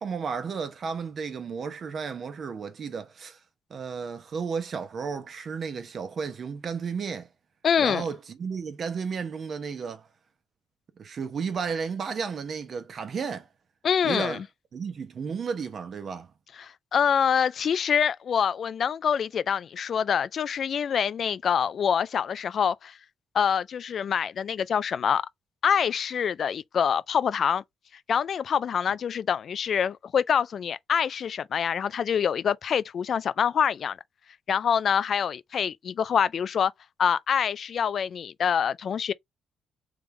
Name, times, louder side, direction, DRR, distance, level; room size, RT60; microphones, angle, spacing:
voice 1, 0.0-3.4 3.7-7.3 7.8-10.1 11.0-13.5 14.0-14.4 14.7-16.3, right 5 dB, 50° right, 0.9 m, -33 dB
voice 2, 7.6-8.0 13.8-14.4 16.6-23.0 23.3-25.2 25.6-27.6 28.1-34.0 34.5-36.7 37.0-39.1, left 7 dB, 55° left, 0.4 m, -25 dB
3.5 x 3.5 x 3.2 m
cardioid pair, 90°, 0 cm